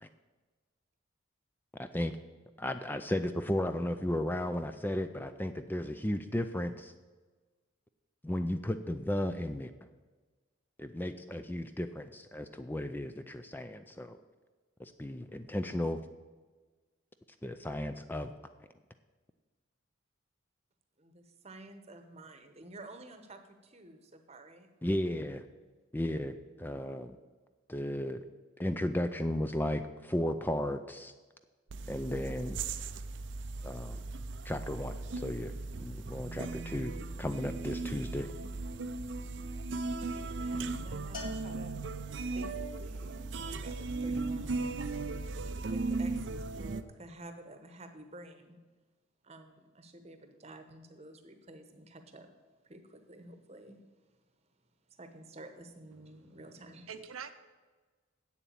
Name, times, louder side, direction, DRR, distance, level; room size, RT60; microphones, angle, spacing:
voice 1, 1.8-2.1 2.6-6.9 8.2-9.7 10.8-14.2 14.8-16.0 17.4-18.3 24.8-25.5 25.9-27.2 27.7-28.2 28.6-31.1 31.9-32.6 33.6-34.0 34.4-35.5 35.8-36.9 37.2-38.3, left 1 dB, 10° left, 9 dB, 0.4 m, -34 dB
voice 2, 21.0-24.7 39.8-41.8 42.3-44.7 45.6-48.6 49.2-52.3 52.6-53.8 54.9-56.9, right 1 dB, 30° right, 8 dB, 1.0 m, -51 dB
sound 1, 31.7-46.8, right 3 dB, 60° right, 0.5 m, -37 dB
Bell, 41.1-42.5, left 2 dB, 40° left, 2.0 m, -46 dB
voice 3, 55.9-56.4 56.9-57.3, right 6 dB, 85° right, 9 dB, 0.8 m, -46 dB
8.2 x 7.2 x 8.6 m, 1.3 s
head